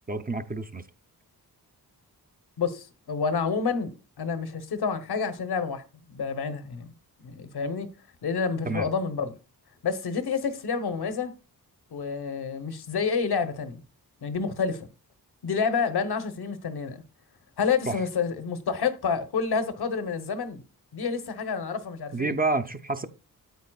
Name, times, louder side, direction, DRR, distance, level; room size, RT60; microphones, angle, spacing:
voice 1, 0.1-0.8 8.6-8.9 17.9-18.0 22.1-23.1, right 3 dB, 25° right, 0.5 m, -28 dB
voice 2, 2.6-5.8 6.1-6.9 7.2-7.9 8.2-9.3 9.8-11.3 11.9-13.8 14.2-14.9 15.4-17.0 17.6-20.6 20.9-22.3, left 5 dB, 85° left, 1.1 m, -29 dB
9.4 x 8.2 x 2.3 m
wide cardioid pair, 115°, 38 cm